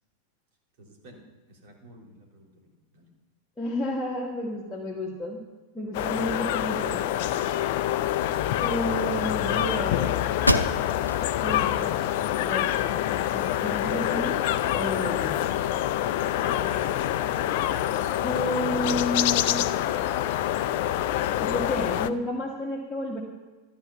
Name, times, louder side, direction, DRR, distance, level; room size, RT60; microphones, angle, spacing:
voice 1, 0.8-1.2 1.5-3.1 16.5-16.9, right 1 dB, 50° right, 0 dB, 3.3 m, -49 dB
voice 2, 3.6-5.4 5.7-7.3 8.6-10.3 11.4-13.0 13.3-14.4 14.7-15.4 18.2-19.7 21.4-23.2, left 1 dB, 10° left, -4 dB, 1.7 m, -31 dB
sound 1, 5.9-22.1, left 12 dB, 50° left, 0.5 m, -26 dB
sound 2, 10.4-11.2 11.7-11.8 12.3-13.2, left 1 dB, 90° left, 0.7 m, -27 dB
13.5 x 9.5 x 6.0 m, 1.2 s
figure-of-eight pair, 90°, 0 cm